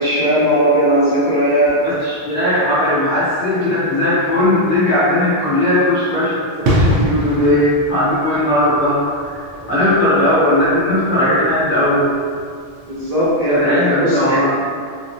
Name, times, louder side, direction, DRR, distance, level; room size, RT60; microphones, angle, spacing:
voice 1, 0.0-1.8 12.9-14.4, right 1 dB, 40° right, -13 dB, 0.9 m, -17 dB
voice 2, 1.8-9.3 9.7-12.1 13.5-14.5, left 1 dB, 40° left, -12 dB, 1.6 m, -17 dB
sound 1, 6.6-13.1 13.4-13.6, equal, 75° right, 0.9 m, -24 dB
3.1 x 2.4 x 2.6 m, 2.1 s
omnidirectional pair, 1.2 m